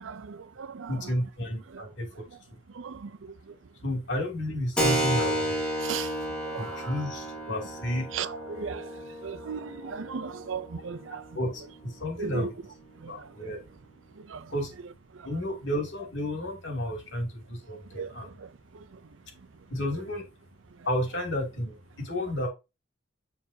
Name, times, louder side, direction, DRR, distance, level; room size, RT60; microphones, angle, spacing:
voice 1, 0.0-1.1 1.7-1.9 2.7-3.5 5.4-5.5 5.8-6.1 6.4-6.9 8.1-11.2 12.2-12.5 13.0-13.5 14.2-14.5 15.1-15.3 17.9-19.0, right 6 dB, 85° right, 0.5 m, -38 dB
voice 2, 0.9-2.1 3.8-5.6 6.6-8.1 11.3-12.5 13.1-13.6 14.5-14.7 15.2-18.3 19.7-20.2 20.9-22.5, left 1 dB, 70° left, 2.7 m, -31 dB
Keyboard (musical), 4.8-13.0, right 1 dB, 5° left, 1.6 m, -33 dB
7.4 x 6.8 x 2.8 m
head